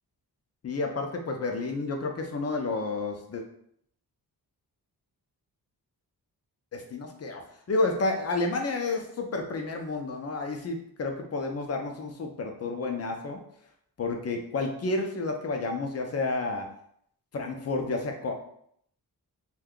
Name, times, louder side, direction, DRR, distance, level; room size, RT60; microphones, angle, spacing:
voice 1, 0.6-3.4 6.7-7.4 7.7-13.4 14.0-16.7 17.3-18.3, left 3 dB, 40° left, 3 dB, 0.5 m, -30 dB
2.6 x 2.3 x 3.6 m, 0.69 s
wide cardioid pair, 120°, 39 cm